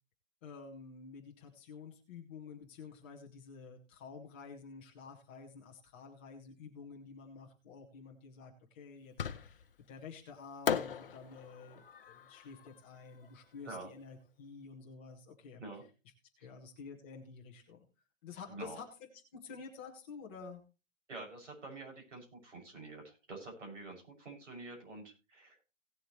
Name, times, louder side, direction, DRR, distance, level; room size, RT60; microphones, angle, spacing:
voice 1, 0.4-15.6 16.4-17.8 18.2-18.9 19.3-20.6, left 5 dB, 10° left, -1 dB, 0.9 m, -50 dB
Fireworks, 9.2-9.8 10.7-13.8, left 7 dB, 45° left, 0.7 m, -39 dB
voice 2, 18.5-18.8 21.1-25.6, right 2 dB, 70° right, 0 dB, 6.8 m, -47 dB
17.5 x 7.5 x 3.1 m, 0.31 s
hypercardioid pair, 175°, 39 cm